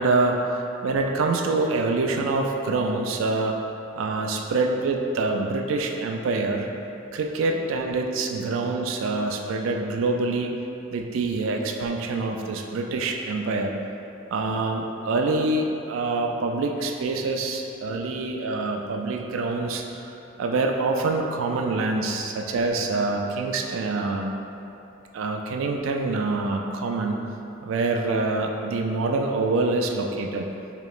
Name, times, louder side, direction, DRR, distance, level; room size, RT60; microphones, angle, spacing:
voice 1, 0.0-3.6 4.0-6.7 7.1-10.5 10.9-13.7 14.3-24.3 25.1-27.2 27.6-30.5, right 3 dB, 80° right, 2 dB, 0.3 m, -26 dB
4.7 x 3.0 x 2.4 m, 2.8 s
head